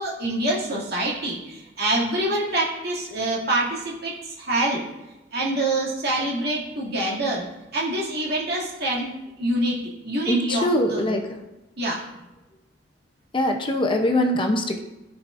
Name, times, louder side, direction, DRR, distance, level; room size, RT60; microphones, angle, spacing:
voice 1, 0.0-4.8 5.3-7.4 7.7-9.1 9.4-11.2 11.8-12.0, right 1 dB, 60° right, -5 dB, 2.3 m, -26 dB
voice 2, 10.3-11.2 13.3-14.8, left 1 dB, 25° left, 3 dB, 0.6 m, -22 dB
13.5 x 4.8 x 2.5 m, 1.0 s
head